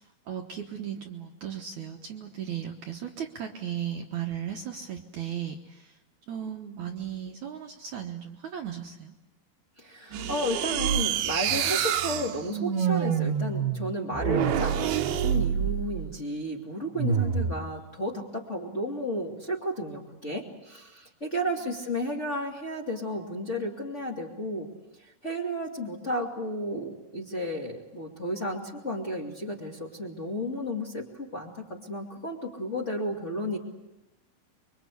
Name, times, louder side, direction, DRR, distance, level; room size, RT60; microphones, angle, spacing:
voice 1, 0.0-6.0 6.3-9.1, right 9 dB, 65° right, 3 dB, 2.2 m, -36 dB
voice 2, 9.8-24.7 24.9-33.6, equal, 25° left, -1 dB, 2.0 m, -33 dB
sound 1, 10.1-16.1 17.0-17.6, right 8 dB, 80° right, 3.0 m, -27 dB
25.0 x 23.5 x 8.4 m, 0.99 s
omnidirectional pair, 4.4 m